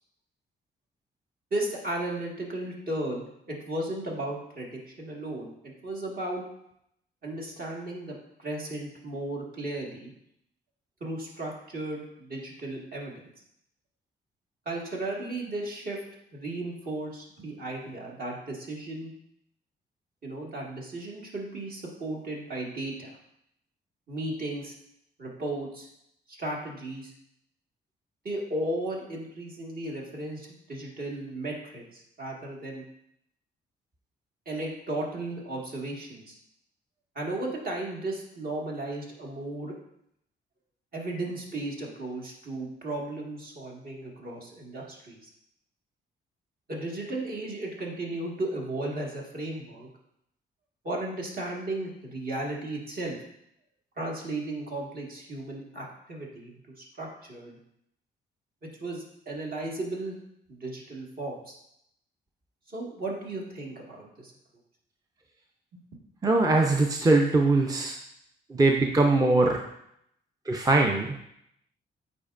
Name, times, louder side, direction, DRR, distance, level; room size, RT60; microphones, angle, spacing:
voice 1, 1.5-6.4 7.2-10.1 11.0-13.2 14.7-16.0 16.3-19.1 20.2-23.2 24.1-24.8 25.2-25.9 26.3-27.1 28.2-32.8 34.5-36.4 37.2-39.7 40.9-45.3 46.7-49.9 50.8-53.2 54.0-57.6 58.8-60.1 60.5-61.6 62.7-64.3 65.7-65.8, right 2 dB, 50° right, -2 dB, 1.8 m, -35 dB
voice 2, 66.2-67.9 68.5-69.6 70.5-71.1, right 2 dB, 20° right, 1 dB, 0.6 m, -22 dB
8.4 x 4.4 x 2.5 m, 0.76 s
cardioid pair, 70°, 19 cm